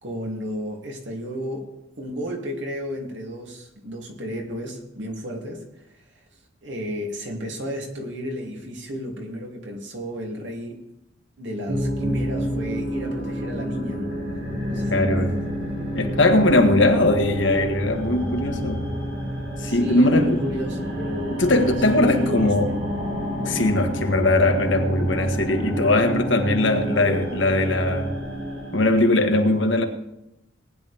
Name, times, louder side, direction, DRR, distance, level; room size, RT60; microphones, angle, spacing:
voice 1, 0.0-1.6 2.0-5.6 5.9-6.0 6.6-10.8 11.4-14.1 14.7-15.4 19.6-21.4 21.6-22.8, equal, 70° right, 3.0 m, -33 dB
sound 1, 11.7-29.1, equal, 85° right, 5.3 m, -29 dB
voice 2, 14.9-15.3 16.0-18.9 19.6-20.4 21.4-22.7 23.5-28.1 28.7-29.8, left 2 dB, 80° left, 1.8 m, -20 dB
19.0 x 10.5 x 3.6 m
head